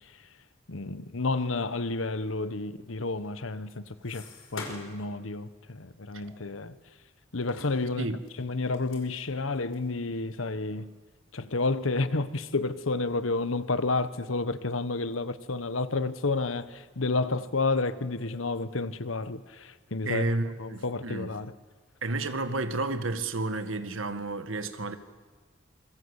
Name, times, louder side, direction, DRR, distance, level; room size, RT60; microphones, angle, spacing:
voice 1, 0.7-4.2 4.5-6.7 7.3-8.1 8.4-10.9 11.3-20.3 20.6-21.5, left 3 dB, 90° left, 1.2 m, -30 dB
sound 1, 3.2-5.1 5.4-5.6 6.2-7.0 7.4-9.9 10.4-10.5 10.8-10.9 11.6-11.8 12.2-12.9 13.3-14.0, left 3 dB, 75° left, 5.2 m, -47 dB
voice 2, 20.0-21.4 22.0-25.0, right 2 dB, 85° right, 1.7 m, -31 dB
27.0 x 22.5 x 8.2 m
head